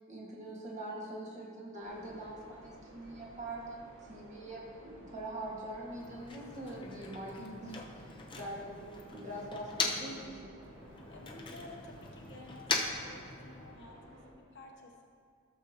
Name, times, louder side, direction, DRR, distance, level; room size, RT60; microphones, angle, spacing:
voice 1, 0.1-7.6 8.4-10.5, right 1 dB, 35° right, -4 dB, 1.7 m, -43 dB
sound 1, 1.8-14.3, right 1 dB, 60° right, 1.6 m, -55 dB
Motor vehicle (road), 5.8-10.3 10.6-13.9, left 4 dB, 20° left, 0.7 m, -40 dB
voice 2, 7.4-7.8 11.1-15.0, left 1 dB, 55° left, 0 dB, 1.0 m, -51 dB
15.5 x 6.9 x 2.9 m, 2.2 s
head